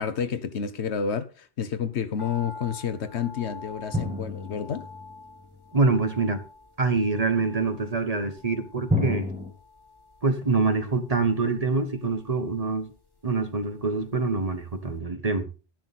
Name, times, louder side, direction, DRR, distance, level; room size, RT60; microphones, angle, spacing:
voice 1, 0.0-4.8, left 7 dB, 90° left, 1.3 m, -30 dB
sound 1, 2.2-14.5 14.7-14.8, left 4 dB, 20° left, 1.6 m, -47 dB
sound 2, 3.9-5.6 8.9-9.5, left 1 dB, 5° right, 1.5 m, -29 dB
voice 2, 5.7-6.4 6.8-9.3 10.2-12.9 13.2-15.5, right 3 dB, 35° right, 1.2 m, -25 dB
12.5 x 10.5 x 4.1 m
omnidirectional pair, 1.1 m